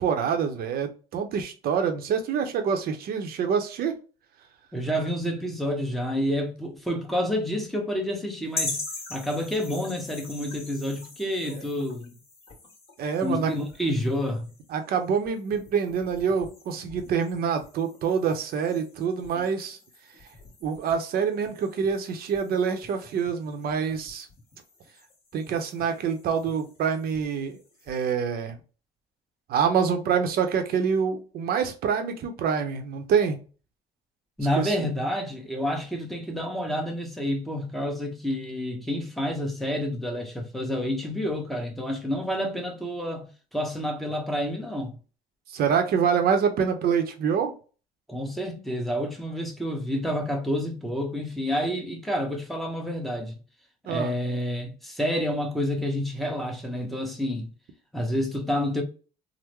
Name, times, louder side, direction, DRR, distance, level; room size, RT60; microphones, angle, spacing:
voice 1, 0.0-4.0 11.5-11.6 13.0-13.5 14.7-19.8 20.6-24.3 25.3-27.6 27.9-28.6 29.5-33.4 34.5-34.8 45.5-47.5 53.9-54.1, right 6 dB, 65° right, 0.7 m, -26 dB
voice 2, 4.7-8.8 9.1-12.1 13.2-14.5 19.4-19.5 34.4-45.0 48.1-53.3 53.9-57.5 57.9-58.8, equal, ahead, 0.9 m, -29 dB
sound 1, 8.5-28.1, left 3 dB, 35° left, 1.6 m, -43 dB
3.6 x 2.1 x 3.1 m
cardioid pair, 110°, 17 cm